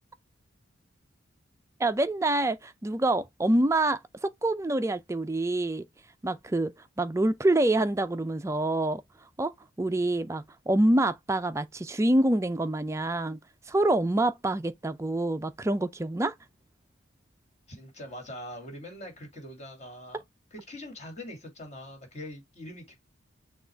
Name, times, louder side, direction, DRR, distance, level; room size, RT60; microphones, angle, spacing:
voice 1, 1.8-5.9 6.2-9.0 9.4-13.4 13.7-16.3, right 1 dB, 15° right, 0.3 m, -26 dB
voice 2, 17.7-20.2 20.5-23.0, left 1 dB, 35° left, 2.1 m, -43 dB
6.2 x 2.4 x 3.3 m
head